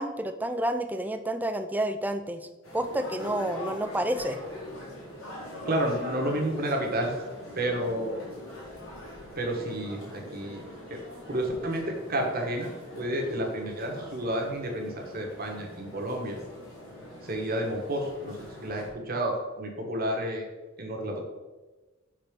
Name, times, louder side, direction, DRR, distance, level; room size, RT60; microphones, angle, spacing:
voice 1, 0.0-2.5 2.7-4.4, right 1 dB, 10° right, 8 dB, 0.4 m, -29 dB
sound 1, 2.6-18.9, left 1 dB, 80° left, 2.3 m, -42 dB
voice 2, 5.6-7.3 7.5-8.1 9.4-10.6 10.9-11.0 11.3-12.7 13.0-16.4 17.2-20.4 20.8-21.2, right 1 dB, 45° right, 1 dB, 1.3 m, -30 dB
6.1 x 4.0 x 5.1 m, 1.2 s
head